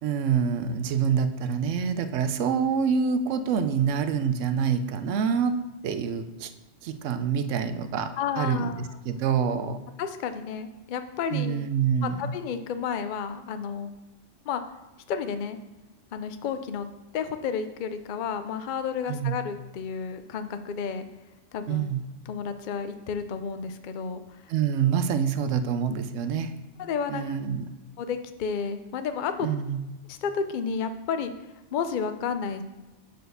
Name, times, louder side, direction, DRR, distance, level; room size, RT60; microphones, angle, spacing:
voice 1, 0.0-5.6 5.8-6.5 6.8-9.8 11.3-12.2 19.1-19.4 21.7-22.0 24.5-26.5 27.1-27.7 29.4-29.8, right 7 dB, 80° right, 10 dB, 0.9 m, -26 dB
voice 2, 8.2-8.8 10.0-11.6 12.0-13.9 14.5-14.6 15.1-15.6 16.1-16.9 17.1-21.1 21.5-21.8 22.3-24.2 26.8-27.3 28.0-29.5 30.1-31.3 31.7-32.6, left 6 dB, 55° left, 9 dB, 0.6 m, -31 dB
6.5 x 4.4 x 6.7 m, 1.1 s
omnidirectional pair, 1.3 m